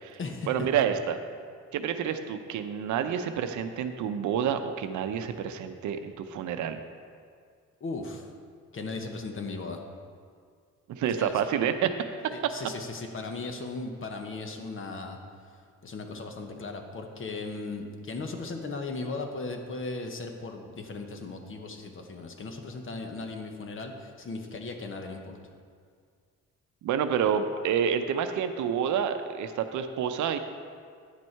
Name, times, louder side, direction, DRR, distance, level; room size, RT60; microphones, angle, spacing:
voice 1, 0.4-1.2 1.7-6.8 10.9-11.9 26.8-30.4, right 8 dB, 75° right, 8 dB, 0.6 m, -28 dB
voice 2, 7.8-8.3 8.7-9.8 11.2-11.3 12.3-15.2 15.8-25.4, left 3 dB, 45° left, 4 dB, 1.0 m, -37 dB
9.7 x 6.2 x 4.5 m, 2.1 s
cardioid pair, 90°, 30 cm